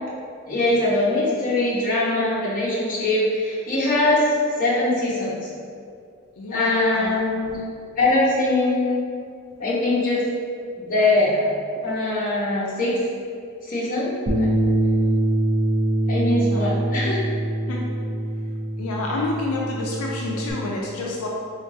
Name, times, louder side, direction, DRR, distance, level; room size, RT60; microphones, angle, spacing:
voice 1, 0.5-5.4 6.5-7.6 8.0-9.1 9.6-10.3 10.8-11.5 11.8-13.0 13.6-14.5 16.1-17.2, left 2 dB, 40° left, -7 dB, 1.0 m, -22 dB
voice 2, 6.4-7.2 9.5-9.6 11.8-11.9 15.0-15.2 16.3-16.7 17.7-17.9 18.8-21.3, left 2 dB, 80° left, -2 dB, 0.4 m, -29 dB
Bass guitar, 14.3-20.5, right 1 dB, 50° right, 0.6 m, -24 dB
3.8 x 3.5 x 2.6 m, 2.3 s
head